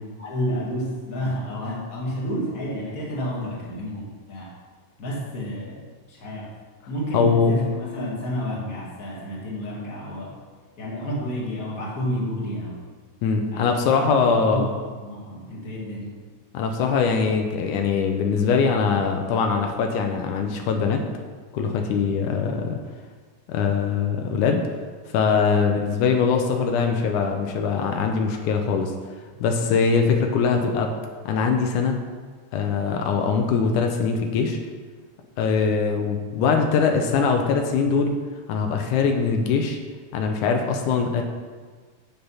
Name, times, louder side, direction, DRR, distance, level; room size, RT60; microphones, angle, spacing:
voice 1, 0.2-4.5 5.0-6.5 6.9-10.4 10.8-12.8 13.5-14.7 14.9-16.2 35.6-35.7, equal, 30° left, -5 dB, 2.3 m, -30 dB
voice 2, 7.1-7.5 13.2-14.7 16.5-21.0 21.5-22.8 23.5-24.6 25.1-28.9 29.4-30.9 31.3-32.0 32.5-34.6 35.4-38.2 38.5-39.8 40.1-41.2, left 5 dB, 85° left, 4 dB, 2.2 m, -22 dB
8.3 x 7.0 x 5.6 m, 1.5 s
omnidirectional pair, 3.6 m